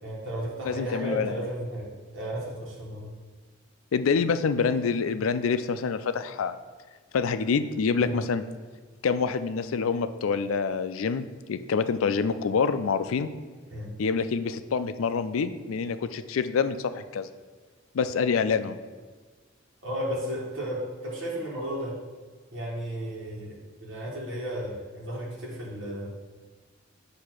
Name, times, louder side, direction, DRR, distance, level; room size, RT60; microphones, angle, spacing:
voice 1, 0.0-3.1 8.0-8.2 13.7-13.9 19.8-22.0 22.5-26.1, equal, 65° right, -5 dB, 1.4 m, -34 dB
voice 2, 0.6-1.4 3.9-6.6 7.1-8.4 9.0-13.3 14.0-17.3 17.9-18.8, left 5 dB, 85° left, 11 dB, 0.4 m, -26 dB
8.2 x 2.8 x 6.0 m, 1.4 s
head